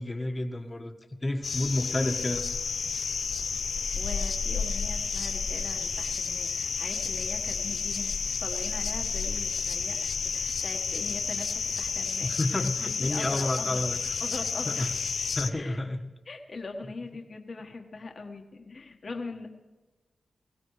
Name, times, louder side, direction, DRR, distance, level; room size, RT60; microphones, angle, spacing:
voice 1, 0.0-2.4 12.2-14.0 14.6-14.9 15.3-16.1, left 1 dB, 25° left, 4 dB, 1.4 m, -30 dB
sound 1, 1.4-15.5, left 5 dB, 75° left, 0.6 m, -31 dB
voice 2, 3.4-11.5 11.8-12.3 13.0-13.8 14.2-14.9 15.5-15.8 16.2-19.5, left 3 dB, 55° left, 2 dB, 1.4 m, -41 dB
22.0 x 16.0 x 3.2 m, 1.2 s
cardioid pair, 65°, 0 cm